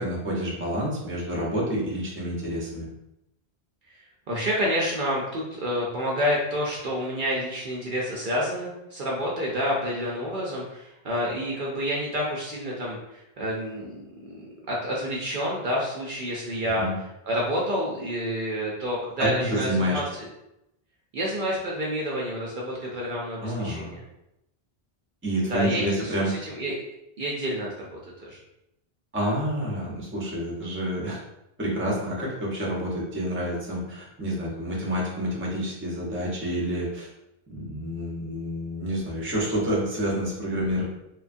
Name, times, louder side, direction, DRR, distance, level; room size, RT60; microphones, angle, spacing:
voice 1, 0.0-2.9 16.8-17.0 19.2-20.0 23.4-23.9 25.2-26.3 29.1-31.2 31.6-37.1 37.5-40.8, equal, 15° right, -4 dB, 0.6 m, -28 dB
voice 2, 4.3-14.0 14.3-16.9 17.2-20.3 21.1-24.0 25.5-26.8 27.2-28.0 28.3-28.4, equal, 60° right, -4 dB, 0.7 m, -29 dB
2.9 x 2.3 x 2.5 m, 0.87 s
omnidirectional pair, 1.1 m